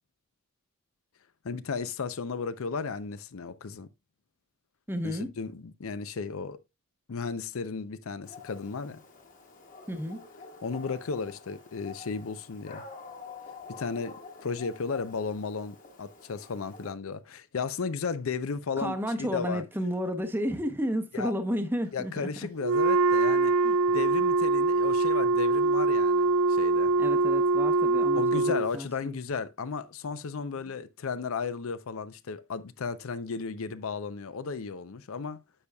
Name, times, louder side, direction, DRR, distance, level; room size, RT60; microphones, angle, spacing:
voice 1, 1.4-3.9 5.0-6.6 7.1-9.0 10.6-12.8 13.7-19.6 21.1-21.3 21.9-23.5 23.9-27.0 28.1-35.4, left 5 dB, 70° left, 0.5 m, -34 dB
voice 2, 4.9-5.3 9.9-10.3 18.8-22.3 23.6-23.8 27.0-29.2, equal, 10° right, 0.8 m, -32 dB
Dog, 8.2-16.9, left 4 dB, 35° left, 1.5 m, -48 dB
Wind instrument woodwind instrument, 22.6-28.7, right 3 dB, 70° right, 0.4 m, -24 dB
9.9 x 6.9 x 2.3 m
head